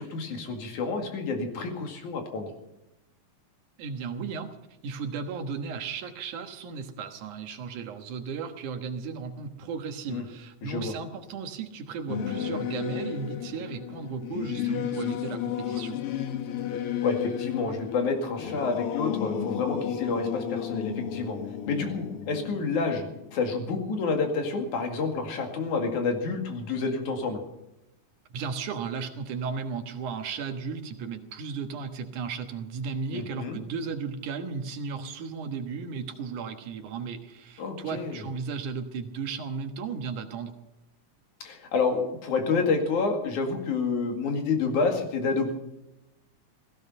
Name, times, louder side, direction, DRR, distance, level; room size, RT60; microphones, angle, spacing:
voice 1, 0.0-2.5 10.1-10.2 10.6-10.9 17.0-21.4 21.7-27.4 33.1-33.6 37.6-38.2 41.4-45.6, left 4 dB, 85° left, 4 dB, 3.6 m, -29 dB
voice 2, 3.8-4.6 4.8-16.0 28.3-40.5, right 5 dB, 90° right, 7 dB, 2.9 m, -35 dB
Singing / Musical instrument, 12.1-23.9, left 9 dB, 60° left, 1.7 m, -33 dB
16.0 x 15.5 x 5.5 m, 0.90 s
omnidirectional pair, 3.4 m